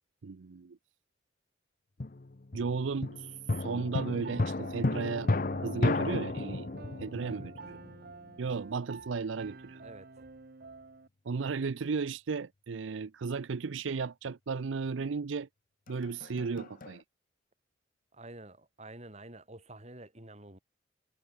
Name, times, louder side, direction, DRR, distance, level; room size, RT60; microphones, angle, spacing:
voice 1, 0.2-0.8 2.5-5.3 5.6-6.7 7.0-7.8 8.4-9.8 11.3-15.5 15.9-17.0, right 5 dB, 80° right, 0.5 m, -35 dB
sound 1, 2.0-8.4 15.9-17.0, left 2 dB, 45° left, 0.8 m, -33 dB
Piano, 4.2-11.1, right 4 dB, 50° right, 0.9 m, -49 dB
voice 2, 9.8-10.3 18.1-20.6, right 1 dB, 35° right, 6.2 m, -49 dB
head